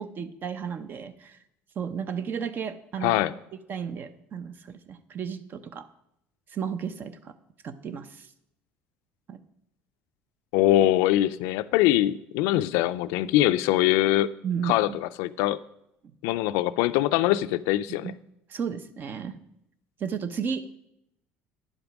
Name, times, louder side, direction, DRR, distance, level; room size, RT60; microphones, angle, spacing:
voice 1, 0.0-1.4 1.8-3.2 3.5-5.9 6.5-7.3 7.6-8.3 9.3-9.4 14.4-15.0 18.0-18.2 18.5-19.4 20.0-20.9, right 7 dB, 45° right, 12 dB, 0.7 m, -33 dB
voice 2, 3.0-3.3 10.5-14.3 14.6-15.6 16.2-18.1, left 14 dB, 85° left, 14 dB, 0.4 m, -23 dB
10.0 x 5.2 x 6.0 m, 0.80 s
cardioid pair, 110°, 5 cm